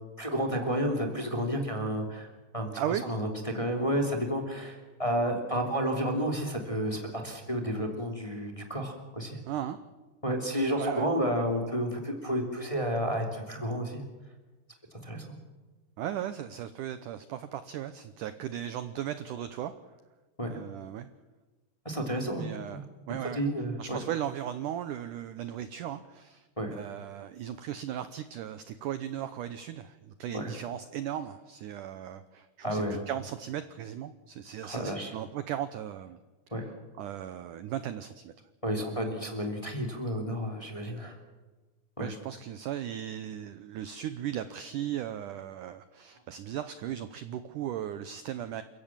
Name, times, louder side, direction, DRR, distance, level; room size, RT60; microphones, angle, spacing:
voice 1, 0.2-2.3 2.5-2.7 3.0-9.4 10.2-14.0 15.0-15.2 20.4-20.6 21.8-22.4 22.7-22.8 23.2-24.0 26.6-26.7 30.3-30.5 32.6-33.0 34.6-35.1 36.5-36.7 38.6-41.2 42.0-42.1, equal, 10° left, 4 dB, 2.2 m, -31 dB
voice 2, 9.5-9.8 10.8-11.1 16.0-19.7 20.5-21.1 22.3-22.8 23.1-23.4 23.8-36.2 37.0-38.3 42.0-48.6, right 10 dB, 80° right, 12 dB, 1.8 m, -37 dB
29.0 x 16.0 x 7.4 m, 1.2 s
omnidirectional pair, 4.8 m